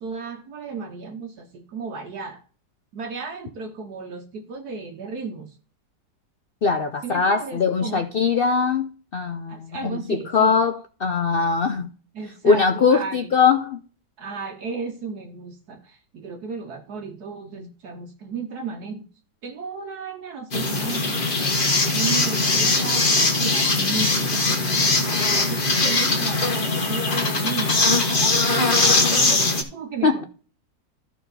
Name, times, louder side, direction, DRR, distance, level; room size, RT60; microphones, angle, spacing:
voice 1, 0.0-2.4 2.9-5.5 7.0-8.0 9.5-10.6 12.1-13.3 14.2-19.1 19.4-21.3 21.8-24.9 25.3-30.2, right 5 dB, 70° right, 1.5 m, -34 dB
voice 2, 6.6-11.9 12.4-13.8 30.0-30.2, left 5 dB, 85° left, 0.5 m, -21 dB
sound 1, 20.5-29.6, left 3 dB, 35° left, 1.3 m, -21 dB
14.0 x 4.6 x 4.0 m
omnidirectional pair, 1.8 m